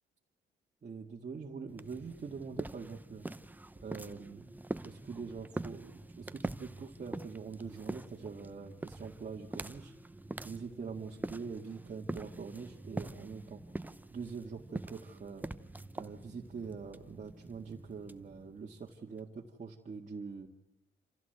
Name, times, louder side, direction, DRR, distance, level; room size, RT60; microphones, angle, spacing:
voice 1, 0.8-3.3 3.8-4.5 4.8-9.9 10.4-13.6 14.1-15.5 16.0-20.5, right 5 dB, 35° right, -2 dB, 1.9 m, -44 dB
sound 1, 1.7-19.2, right 2 dB, 10° right, 0.8 m, -44 dB
27.0 x 15.5 x 8.0 m, 0.89 s
cardioid pair, 90°, 20 cm